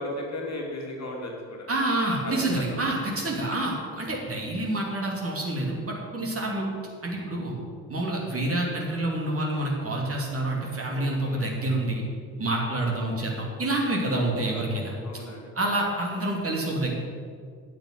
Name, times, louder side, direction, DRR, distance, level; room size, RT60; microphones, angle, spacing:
voice 1, 0.0-1.7 2.2-2.6 10.9-11.5 15.0-15.7, left 1 dB, 35° left, -1 dB, 2.7 m, -36 dB
voice 2, 1.7-6.7 7.0-7.5 7.9-12.0 12.4-14.9 15.5-16.9, right 1 dB, 30° right, -1 dB, 2.9 m, -28 dB
8.9 x 8.9 x 7.7 m, 2.1 s
figure-of-eight pair, 45°, 45 cm